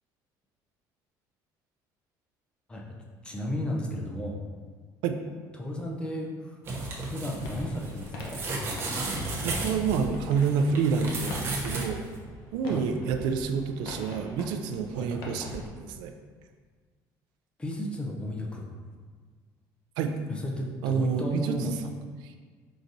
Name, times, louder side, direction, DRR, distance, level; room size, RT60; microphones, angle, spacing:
voice 1, 3.2-4.4 5.5-6.6 7.0-8.4 12.7-12.9 15.0-15.1 17.6-18.6 20.3-21.8, equal, 15° left, 0 dB, 0.5 m, -33 dB
sound 1, 6.6-11.9 12.2-12.3, right 2 dB, 30° right, 0.7 m, -34 dB
sound 2, 7.4-15.7, left 1 dB, 75° left, 0.9 m, -42 dB
voice 2, 9.4-12.0 12.5-16.1 20.0-20.1 20.8-21.7 22.2-22.3, right 6 dB, 85° right, 6 dB, 0.4 m, -28 dB
4.7 x 3.9 x 2.6 m, 1.5 s
cardioid pair, 165°, 7 cm